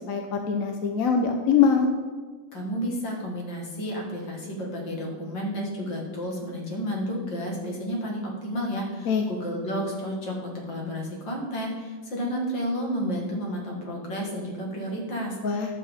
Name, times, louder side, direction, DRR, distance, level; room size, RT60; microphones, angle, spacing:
voice 1, 0.1-1.9 9.1-9.2 15.4-15.7, left 6 dB, 60° left, 4 dB, 0.9 m, -23 dB
voice 2, 2.5-15.7, equal, 75° left, -2 dB, 2.5 m, -31 dB
11.0 x 7.5 x 3.6 m, 1.4 s
omnidirectional pair, 2.0 m